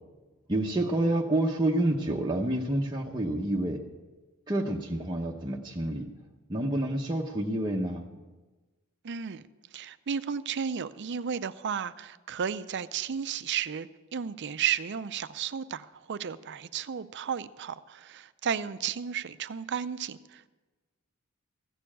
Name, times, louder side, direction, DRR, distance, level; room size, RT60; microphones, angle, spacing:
voice 1, 0.5-3.8 4.5-6.1 6.5-8.2, right 1 dB, 20° right, -1 dB, 0.8 m, -28 dB
voice 2, 9.0-9.4 9.7-20.6, right 7 dB, 55° right, 14 dB, 0.5 m, -33 dB
15.5 x 6.9 x 8.5 m, 1.2 s
head